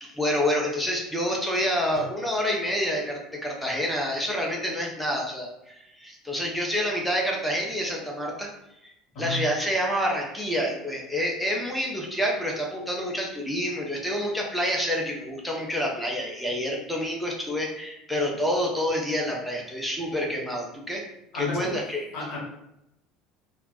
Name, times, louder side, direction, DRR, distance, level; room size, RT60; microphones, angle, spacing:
voice 1, 0.0-8.5 8.8-8.9 9.2-21.0 21.3-22.0, equal, ahead, -1 dB, 0.7 m, -28 dB
voice 2, 21.3-21.7 22.1-22.4, left 2 dB, 55° left, -3 dB, 1.0 m, -31 dB
3.3 x 2.0 x 2.3 m, 0.83 s
figure-of-eight pair, 65°, 0 cm